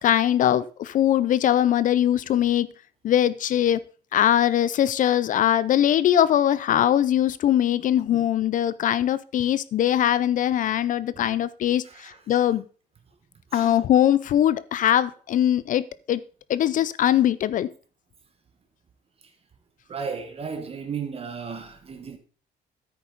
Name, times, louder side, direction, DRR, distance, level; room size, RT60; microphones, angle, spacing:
voice 1, 0.0-2.7 3.0-3.8 4.1-12.6 13.5-16.2 16.5-17.7, left 11 dB, 50° left, 0.5 m, -21 dB
voice 2, 11.8-12.4 13.5-13.8 19.2-19.3 19.9-22.2, right 6 dB, 35° right, 1.3 m, -35 dB
10.0 x 8.7 x 3.9 m
cardioid pair, 110°, 17 cm